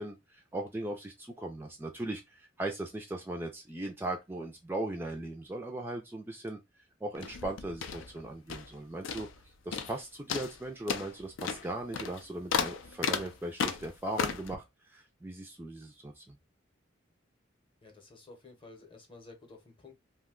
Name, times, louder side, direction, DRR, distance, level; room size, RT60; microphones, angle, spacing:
voice 1, 0.0-16.4, right 1 dB, 10° right, 0.3 m, -39 dB
sound 1, 7.1-8.8 9.0-9.4 9.7-10.0 10.3-14.6, left 6 dB, 90° left, 0.4 m, -34 dB
voice 2, 17.8-19.9, left 3 dB, 25° left, 0.7 m, -52 dB
2.6 x 2.1 x 3.6 m
head